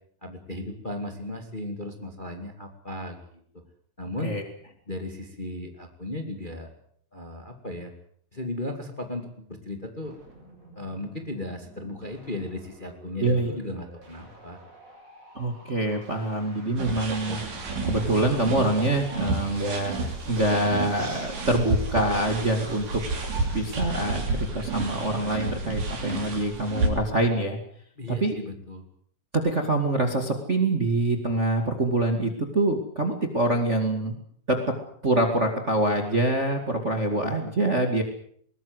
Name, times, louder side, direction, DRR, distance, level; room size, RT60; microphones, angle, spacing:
voice 1, 0.2-3.4 4.0-4.3 4.9-6.7 7.1-7.9 8.3-10.1 10.8-14.6 28.0-28.8, left 1 dB, 15° left, 5 dB, 2.2 m, -36 dB
sound 1, 10.0-24.0, right 2 dB, 50° right, 8.7 m, -52 dB
voice 2, 13.2-13.6 15.3-17.4 17.9-19.9 20.3-23.0 23.5-27.6 28.2-28.4 29.3-34.1 34.5-34.8 35.0-38.0, right 2 dB, 25° right, 5 dB, 2.1 m, -25 dB
sound 2, 16.8-26.9, right 2 dB, 75° right, 5.3 m, -30 dB
21.0 x 19.5 x 8.0 m, 0.62 s
omnidirectional pair, 3.7 m